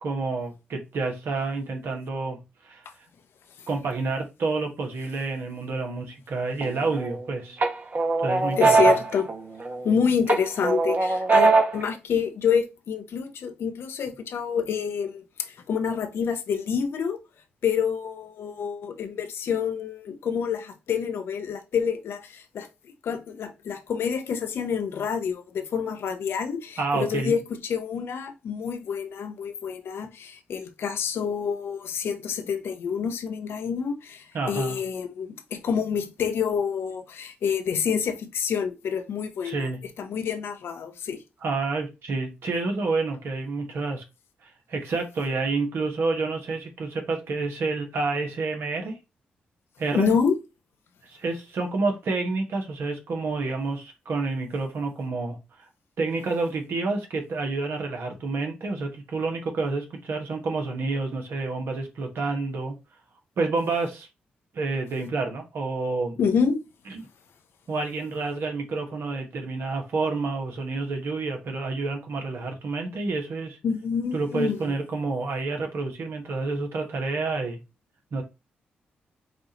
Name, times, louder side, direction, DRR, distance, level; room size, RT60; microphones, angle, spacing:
voice 1, 0.0-2.8 3.7-7.6 8.2-9.0 26.8-27.3 34.3-34.8 39.4-39.8 41.4-44.0 44.4-49.0 49.8-50.1 51.1-55.7 56.0-62.7 63.4-64.1 64.5-66.2 66.9-67.0 67.7-73.6 74.1-77.6 78.1-78.2, right 3 dB, 70° right, 1.4 m, -29 dB
sound 1, 6.6-7.2 7.6-9.9 10.3-11.9, right 3 dB, 45° right, 1.0 m, -21 dB
voice 2, 8.6-9.3 9.8-17.2 17.6-22.7 23.0-39.7 40.0-41.2 49.9-50.4 66.2-66.6 73.6-74.6, left 6 dB, 70° left, 0.7 m, -27 dB
6.0 x 2.6 x 2.9 m
supercardioid pair, 45°, 4 cm